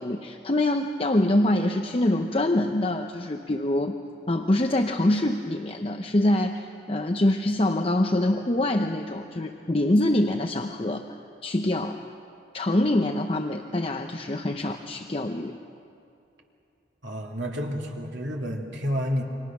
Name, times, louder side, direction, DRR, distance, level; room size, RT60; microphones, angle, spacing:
voice 1, 0.0-4.0 4.3-11.0 11.4-12.0 12.5-15.5, left 1 dB, 30° left, 5 dB, 0.7 m, -25 dB
voice 2, 17.0-19.2, equal, 85° right, 0 dB, 2.9 m, -30 dB
29.0 x 24.5 x 6.1 m, 2.6 s
head